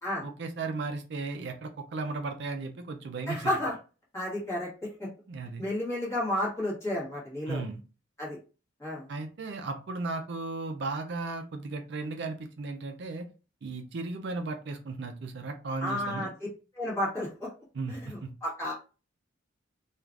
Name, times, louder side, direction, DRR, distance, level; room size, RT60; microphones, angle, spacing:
voice 1, 0.2-3.5 5.3-5.7 7.5-7.8 9.1-13.2 13.6-16.3 17.7-18.3, right 3 dB, 60° right, 6 dB, 0.4 m, -35 dB
voice 2, 3.3-3.7 4.1-4.7 5.0-5.1 5.6-7.6 8.2-8.4 8.8-9.1 15.8-16.3 16.7-17.5 17.9-18.7, left 1 dB, 15° left, -6 dB, 1.4 m, -32 dB
3.2 x 2.4 x 2.4 m, 0.34 s
head